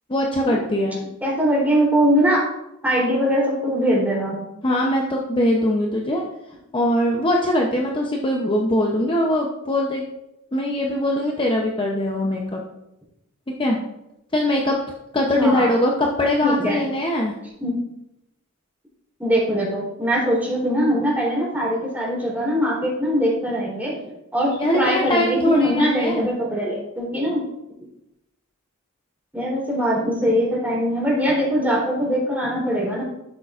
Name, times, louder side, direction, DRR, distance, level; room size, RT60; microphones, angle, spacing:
voice 1, 0.1-1.0 4.6-6.2 6.7-10.0 10.5-12.6 13.5-13.8 14.3-14.8 15.1-17.3 24.6-26.3, left 1 dB, 25° left, 0 dB, 0.7 m, -21 dB
voice 2, 1.2-2.5 2.8-4.4 15.4-15.7 16.4-16.8 17.6-17.7 19.2-24.0 24.3-27.4 29.3-33.0, equal, 10° right, -6 dB, 3.3 m, -22 dB
12.0 x 6.6 x 2.5 m, 0.87 s
head